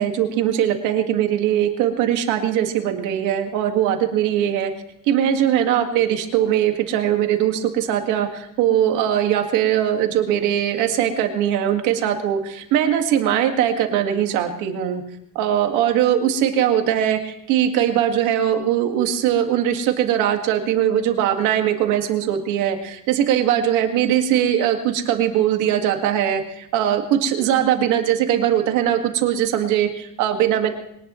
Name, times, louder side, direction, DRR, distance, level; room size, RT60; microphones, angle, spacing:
voice 1, 0.0-4.7 5.1-15.0 15.4-30.7, right 10 dB, 85° right, 5 dB, 2.0 m, -20 dB
22.5 x 18.5 x 3.2 m, 0.79 s
cardioid pair, 145°, 30 cm